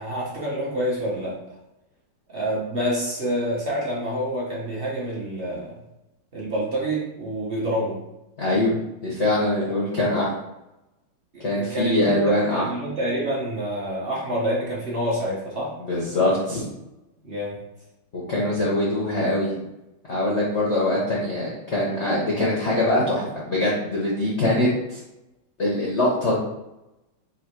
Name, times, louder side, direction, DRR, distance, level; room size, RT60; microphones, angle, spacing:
voice 1, 0.0-1.4 2.3-5.7 6.3-8.0 9.6-9.7 11.3-15.7 17.2-17.6, equal, 40° right, -6 dB, 0.8 m, -27 dB
voice 2, 8.4-8.8 9.0-10.3 11.4-12.7 15.8-16.7 18.1-19.5 20.1-25.0 25.6-26.4, left 1 dB, 60° left, -5 dB, 0.7 m, -23 dB
4.0 x 2.4 x 4.4 m, 0.93 s
omnidirectional pair, 2.4 m